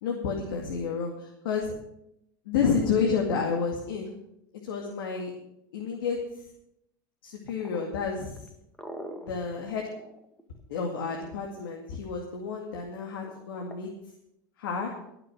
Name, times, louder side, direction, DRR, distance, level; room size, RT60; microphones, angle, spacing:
voice 1, 0.0-1.7 2.5-4.2 4.6-5.3 5.7-6.2 7.2-8.5 9.2-9.9 10.7-13.9 14.6-14.9, left 5 dB, 85° left, 0 dB, 2.3 m, -30 dB
sound 1, 7.5-11.2 13.2-13.8, equal, 10° left, 1.8 m, -43 dB
19.0 x 6.7 x 6.4 m, 0.79 s
supercardioid pair, 110°, 11 cm